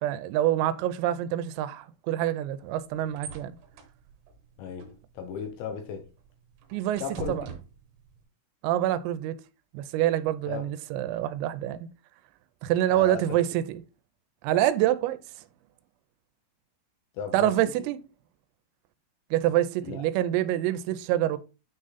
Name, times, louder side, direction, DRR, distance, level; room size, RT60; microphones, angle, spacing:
voice 1, 0.0-3.5 6.7-7.0 7.3-7.5 8.6-9.4 9.7-11.9 12.6-13.8 14.4-15.2 17.3-18.0 19.3-21.4, right 13 dB, 85° right, 3.3 m, -26 dB
sound 1, 2.5-8.2, right 6 dB, 70° right, 3.0 m, -45 dB
voice 2, 4.6-6.1 7.0-7.4 10.5-10.6 12.9-13.6 17.1-17.6 19.8-20.0, left 7 dB, 75° left, 2.8 m, -36 dB
9.4 x 3.7 x 4.0 m
omnidirectional pair, 5.9 m